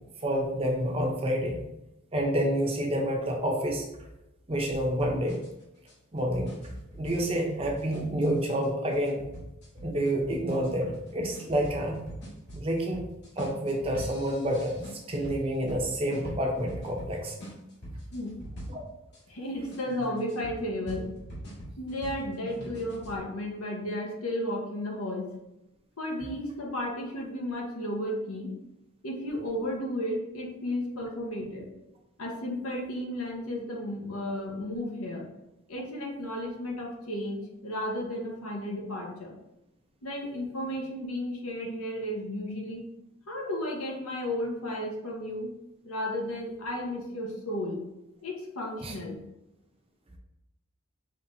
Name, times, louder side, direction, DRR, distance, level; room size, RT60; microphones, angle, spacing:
voice 1, 0.2-1.6 2.1-3.9 4.5-5.4 6.1-6.5 6.9-9.2 9.8-12.1 12.5-13.0 13.4-17.3 18.7-18.8 48.8-48.9, equal, 25° right, 1 dB, 0.7 m, -28 dB
sound 1, 4.7-19.2 19.7-23.2, equal, 50° left, 1.6 m, -43 dB
voice 2, 19.3-21.1 21.8-25.3 26.0-28.5 29.0-31.7 32.2-35.3 35.7-39.4 40.0-42.9 43.3-45.5 45.8-47.8 48.2-49.2, left 1 dB, 90° left, 0 dB, 1.0 m, -33 dB
5.6 x 3.2 x 2.7 m, 0.90 s
head